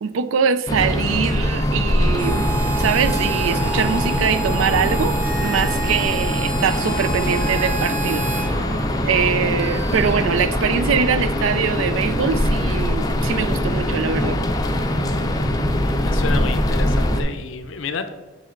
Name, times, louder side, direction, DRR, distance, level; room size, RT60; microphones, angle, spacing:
voice 1, 0.0-8.6 9.0-14.4, right 6 dB, 75° right, 13 dB, 0.4 m, -23 dB
sound 1, 0.7-17.2, left 1 dB, 20° left, 0.5 m, -22 dB
sound 2, 1.4-10.1, right 2 dB, 50° right, 1.4 m, -37 dB
Harmonica, 2.2-8.5, right 5 dB, 10° right, 1.0 m, -30 dB
voice 2, 15.7-18.1, left 5 dB, 75° left, 9 dB, 0.6 m, -30 dB
6.3 x 4.8 x 4.4 m, 1.2 s
head